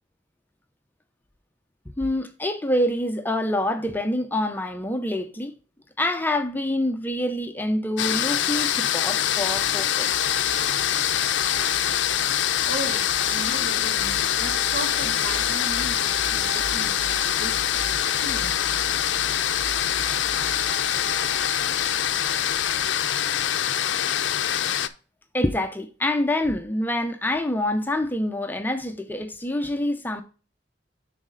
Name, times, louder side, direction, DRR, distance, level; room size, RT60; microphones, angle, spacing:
voice 1, 2.0-5.6 6.0-10.1 25.3-30.2, left 1 dB, 10° left, 0.5 m, -26 dB
sound 1, 8.0-24.9, left 10 dB, 70° left, 0.5 m, -24 dB
sound 2, 9.2-22.9, right 3 dB, 40° right, 1.0 m, -40 dB
voice 2, 12.7-17.6 18.1-18.5, right 1 dB, 65° right, 2.3 m, -36 dB
10.0 x 4.1 x 3.8 m
head